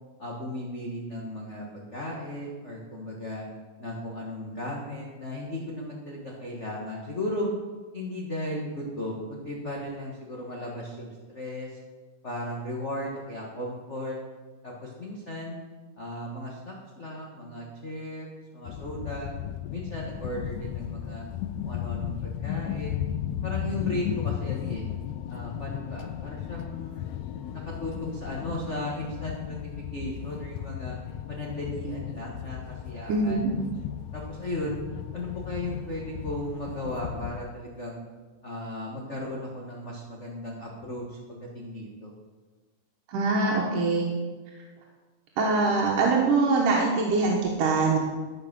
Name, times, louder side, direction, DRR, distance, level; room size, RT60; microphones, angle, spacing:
voice 1, 0.2-3.5 3.8-7.5 7.9-11.8 12.2-14.2 14.6-15.6 16.0-18.3 18.5-19.3 19.7-21.3 21.6-23.0 23.4-24.9 25.3-27.2 27.5-31.0 31.3-33.5 34.1-34.8 35.1-38.0 38.4-42.1, left 1 dB, 55° left, -3 dB, 0.8 m, -36 dB
sound 1, 18.6-37.4, left 10 dB, 80° left, 1.8 m, -35 dB
voice 2, 33.1-33.5 43.1-44.1 45.4-48.0, right 3 dB, 90° right, -2 dB, 2.8 m, -23 dB
13.0 x 5.9 x 6.0 m, 1.3 s
omnidirectional pair, 3.6 m